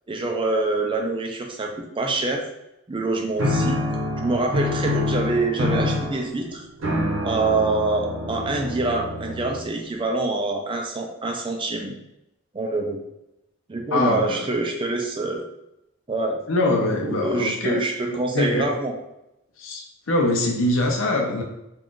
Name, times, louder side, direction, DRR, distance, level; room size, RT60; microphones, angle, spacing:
voice 1, 0.1-2.5 2.9-3.8 4.2-6.7 7.2-12.0 12.5-13.0 13.7-15.4 16.1-16.4 17.0-19.0, right 2 dB, 25° right, 2 dB, 0.4 m, -25 dB
sound 1, 3.4-9.9, left 1 dB, 90° right, 0.7 m, -26 dB
voice 2, 13.9-14.5 16.5-17.8 18.3-18.7 19.6-21.4, left 2 dB, 75° left, 1 dB, 0.6 m, -23 dB
2.5 x 2.4 x 3.6 m, 0.85 s
head